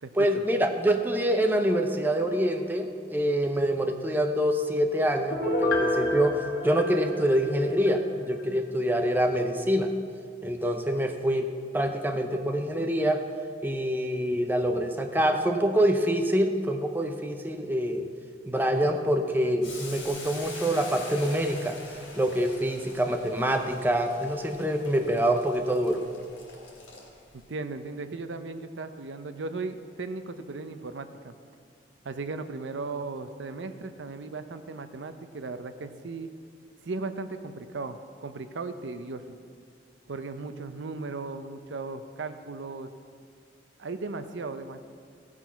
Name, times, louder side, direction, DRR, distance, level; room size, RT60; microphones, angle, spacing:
voice 1, 0.1-9.9 10.4-13.2 13.6-18.1 18.5-21.8 22.2-26.0, equal, 10° right, 4 dB, 0.6 m, -26 dB
Piano, 5.3-8.0 8.4-8.5, left 1 dB, 55° left, 1.3 m, -29 dB
Boiling, 19.6-27.4, left 3 dB, 90° left, 3.0 m, -44 dB
voice 2, 27.3-31.3 32.0-36.3 36.8-39.4 40.1-42.9 43.8-44.8, right 3 dB, 75° right, 10 dB, 0.6 m, -36 dB
16.0 x 6.1 x 5.7 m, 2.2 s
head